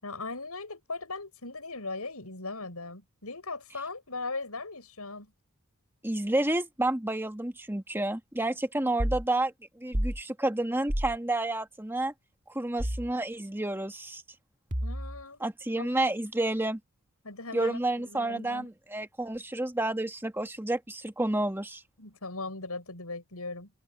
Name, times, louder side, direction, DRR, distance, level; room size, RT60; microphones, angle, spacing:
voice 1, 0.0-5.3 14.8-15.4 15.8-15.9 17.2-18.7 22.0-23.7, left 3 dB, 90° left, 6.9 m, -39 dB
voice 2, 6.0-12.1 12.5-14.2 15.4-16.8 17.5-21.8, right 2 dB, 10° right, 1.6 m, -30 dB
sound 1, 9.0-9.2 9.9-10.2 10.9-11.2 12.8-13.1 14.7-15.2, equal, 35° right, 2.5 m, -30 dB
head